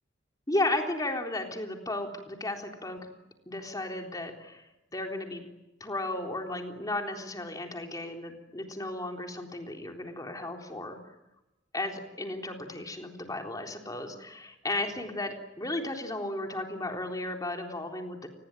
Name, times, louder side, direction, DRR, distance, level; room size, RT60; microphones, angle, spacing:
voice 1, 0.5-3.1 3.5-5.4 5.8-11.2 11.7-18.3, left 2 dB, 20° left, 2 dB, 3.8 m, -34 dB
28.5 x 21.0 x 9.1 m, 0.95 s
head